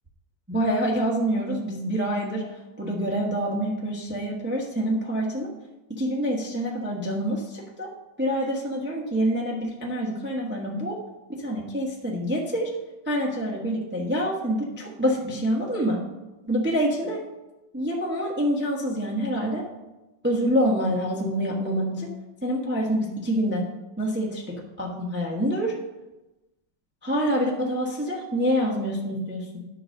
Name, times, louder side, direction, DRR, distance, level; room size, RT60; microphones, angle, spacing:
voice 1, 0.5-2.4 2.8-5.5 5.9-7.9 8.2-11.0 11.3-12.7 13.1-16.0 16.4-17.2 17.7-19.6 20.2-22.1 22.4-23.7 24.0-25.7 27.0-29.6, equal, 5° right, -3 dB, 1.0 m, -26 dB
11.0 x 4.0 x 6.5 m, 1.0 s
omnidirectional pair, 2.3 m